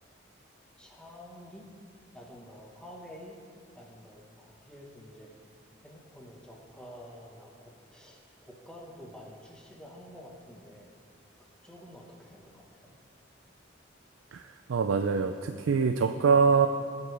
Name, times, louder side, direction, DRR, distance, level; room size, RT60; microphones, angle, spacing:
voice 1, 0.8-1.6 2.1-3.4 3.7-5.3 5.8-10.9 11.4-12.9, equal, 5° left, -2 dB, 1.5 m, -49 dB
voice 2, 14.3-16.7, right 5 dB, 85° right, 7 dB, 0.4 m, -24 dB
20.0 x 8.1 x 3.5 m, 2.2 s
head